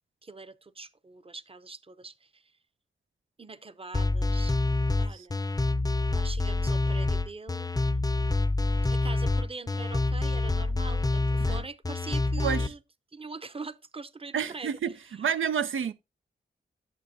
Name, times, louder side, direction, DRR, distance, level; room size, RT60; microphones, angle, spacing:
voice 1, 0.2-2.5 3.4-4.6 5.0-5.4 6.1-7.8 8.9-12.8 13.1-15.3, right 3 dB, 30° right, 0.7 m, -43 dB
sound 1, 3.9-12.7, left 2 dB, 20° left, 0.5 m, -27 dB
voice 2, 14.3-15.9, right 7 dB, 85° right, 0.5 m, -29 dB
11.0 x 6.7 x 2.7 m
cardioid pair, 50°, 20 cm